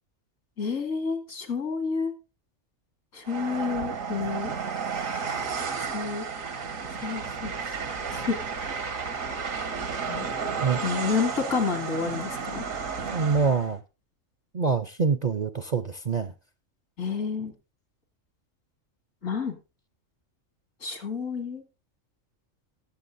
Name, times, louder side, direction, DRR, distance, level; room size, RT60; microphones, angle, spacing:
voice 1, 0.6-2.1 3.1-4.5 5.8-6.2 7.0-7.7 8.1-8.7 10.1-10.3 10.8-12.6 17.0-17.5 19.2-19.5 20.8-21.6, left 5 dB, 75° left, 2.5 m, -30 dB
Train, 3.3-13.8, right 5 dB, 85° right, 1.8 m, -32 dB
voice 2, 13.1-13.8 14.5-16.3, right 5 dB, 45° right, 0.6 m, -25 dB
19.0 x 7.7 x 2.6 m
omnidirectional pair, 1.4 m